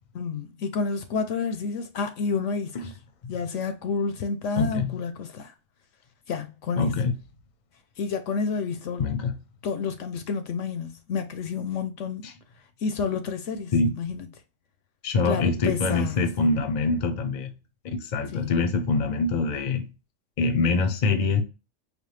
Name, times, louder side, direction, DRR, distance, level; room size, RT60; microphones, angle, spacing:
voice 1, 0.1-2.9 3.3-5.5 6.3-7.0 8.0-9.0 9.6-12.3 12.8-14.3 15.2-16.3 18.3-18.6, left 5 dB, 70° left, 0.9 m, -30 dB
voice 2, 4.6-5.0 6.8-7.1 9.0-9.3 12.2-12.3 13.7-14.0 15.0-17.5 17.8-19.8 20.4-21.4, left 3 dB, 45° left, 0.7 m, -24 dB
5.1 x 2.3 x 3.1 m
omnidirectional pair, 1.4 m